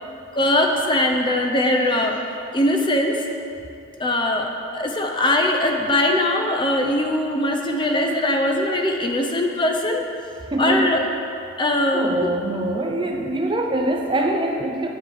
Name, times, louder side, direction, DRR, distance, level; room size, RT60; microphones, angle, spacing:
voice 1, 0.3-2.2 2.5-3.2 4.0-10.0 10.6-11.1 11.6-12.3, left 1 dB, 25° left, 3 dB, 0.6 m, -21 dB
voice 2, 10.5-11.0 11.9-14.9, right 1 dB, 25° right, 2 dB, 0.6 m, -23 dB
9.4 x 7.4 x 4.8 m, 2.6 s
head